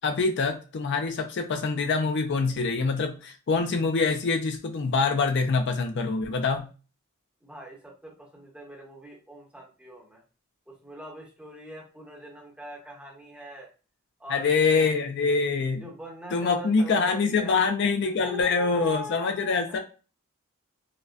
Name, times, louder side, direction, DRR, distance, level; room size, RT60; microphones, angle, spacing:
voice 1, 0.0-6.7 14.3-15.8 16.3-19.8, left 4 dB, 55° left, 5 dB, 0.4 m, -25 dB
voice 2, 7.4-10.2 10.7-13.7 14.2-15.1 15.8-17.6 18.0-19.8, right 1 dB, 5° right, -1 dB, 0.9 m, -42 dB
5.0 x 2.1 x 2.3 m, 0.34 s
head